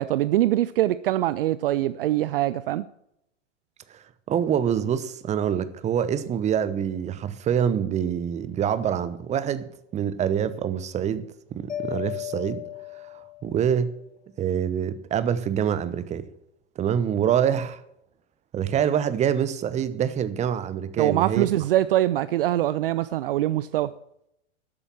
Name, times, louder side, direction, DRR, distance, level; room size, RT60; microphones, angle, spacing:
voice 1, 0.0-2.9 21.0-23.9, right 14 dB, 50° right, 0.5 m, -23 dB
voice 2, 4.3-11.3 11.5-12.6 13.1-13.9 14.4-16.3 16.8-17.8 18.5-21.5, right 9 dB, 20° right, 0.9 m, -25 dB
Mallet percussion, 11.7-13.8, left 16 dB, 80° left, 1.7 m, -35 dB
12.5 x 8.7 x 7.2 m
figure-of-eight pair, 105°, 36 cm